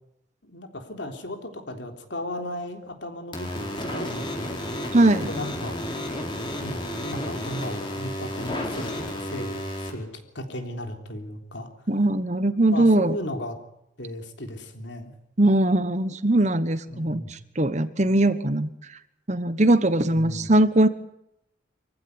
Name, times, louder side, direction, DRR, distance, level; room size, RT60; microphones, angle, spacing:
voice 1, 0.4-4.5 5.3-5.8 6.6-10.1 10.3-11.7 12.7-13.6 14.0-15.1 16.9-17.3 20.1-20.5, left 1 dB, 65° left, 5 dB, 3.6 m, -36 dB
sound 1, 3.3-9.9, left 1 dB, 25° left, 4.3 m, -32 dB
voice 2, 4.9-5.3 11.9-13.1 15.4-19.0 19.3-20.9, right 1 dB, 35° right, 12 dB, 1.1 m, -21 dB
25.0 x 15.5 x 9.6 m, 0.81 s
head